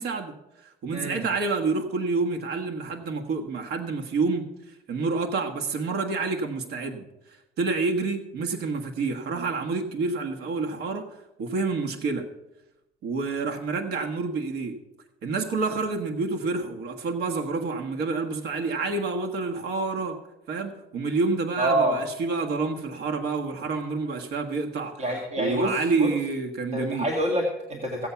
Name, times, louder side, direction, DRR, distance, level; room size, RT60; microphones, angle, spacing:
voice 1, 0.0-7.1 7.6-11.1 11.4-12.3 13.0-14.8 15.2-20.2 20.5-25.0 25.4-27.1, right 4 dB, 70° right, 4 dB, 1.4 m, -28 dB
voice 2, 0.9-1.2 21.6-22.0 25.0-26.1 26.7-28.1, right 1 dB, 40° right, 1 dB, 1.9 m, -27 dB
15.5 x 8.2 x 5.8 m, 0.93 s
cardioid pair, 110°, 17 cm